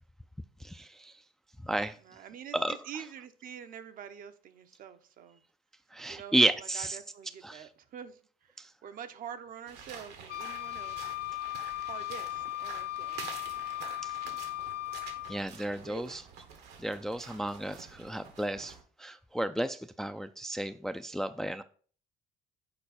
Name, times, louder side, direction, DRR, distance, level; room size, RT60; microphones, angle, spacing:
voice 1, 0.6-1.1 1.6-2.0 2.5-2.8 5.9-7.0 7.4-7.7 8.6-8.7 14.0-14.1 15.3-16.2 16.8-21.6, right 1 dB, 5° left, 0.3 m, -32 dB
voice 2, 2.0-5.4 6.1-11.1 11.8-13.5 14.2-14.4 15.8-16.2, right 8 dB, 55° right, 0.7 m, -46 dB
sound 1, 9.7-18.8, right 6 dB, 85° right, 1.4 m, -48 dB
Wind instrument woodwind instrument, 10.3-15.4, left 16 dB, 65° left, 0.6 m, -37 dB
6.8 x 4.6 x 4.2 m
cardioid pair, 110°, 17 cm